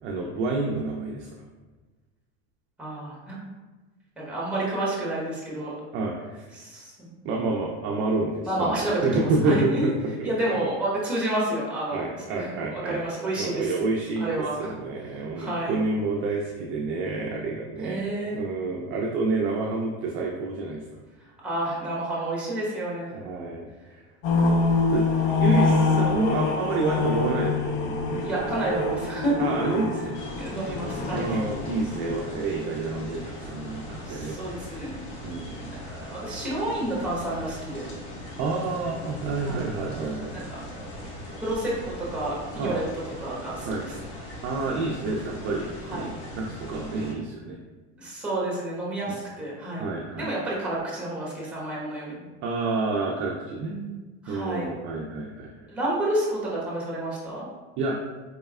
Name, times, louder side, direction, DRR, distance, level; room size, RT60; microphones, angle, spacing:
voice 1, 0.0-1.3 5.9-6.4 7.2-9.9 10.2-10.7 11.9-13.0 13.4-18.0 18.3-20.8 23.1-23.7 23.9-24.0 24.5-24.6 24.9-27.5 27.8-28.4 29.4-30.2 31.1-34.8 35.2-35.7 38.4-40.3 42.6-42.8 43.7-43.9 44.4-47.6 49.1-49.2 49.8-50.3 52.4-53.7 54.3-55.5 57.8-58.0, right 3 dB, 40° right, -1 dB, 0.4 m, -29 dB
voice 2, 2.8-3.4 4.2-5.7 6.5-7.1 8.4-9.9 10.2-13.8 14.2-14.8 15.0-15.8 17.8-18.4 21.4-23.1 28.2-29.5 30.4-31.4 34.0-35.0 35.7-37.9 39.4-39.7 40.3-41.0 41.4-42.8 43.2-43.9 45.4-45.5 45.9-46.1 48.0-49.9 50.2-52.3 53.6-54.7 55.7-57.5, right 1 dB, 5° right, -5 dB, 1.1 m, -30 dB
sound 1, 24.2-32.2, left 3 dB, 50° left, 0.6 m, -25 dB
sound 2, 30.1-47.1, left 1 dB, 65° left, 1.3 m, -40 dB
4.2 x 3.1 x 2.3 m, 1.2 s
supercardioid pair, 135°, 34 cm